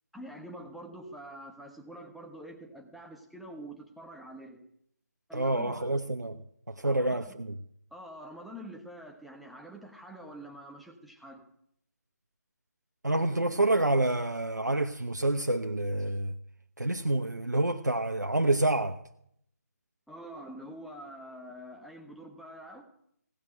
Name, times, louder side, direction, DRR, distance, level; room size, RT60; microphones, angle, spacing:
voice 1, 0.1-4.6 5.3-6.0 6.8-7.3 7.9-11.4 20.1-22.8, right 1 dB, ahead, 1.2 m, -46 dB
voice 2, 5.3-6.4 6.7-7.6 13.0-16.3 16.8-19.0, right 2 dB, 85° right, 1.0 m, -28 dB
17.5 x 6.1 x 9.9 m
figure-of-eight pair, 150°, 9 cm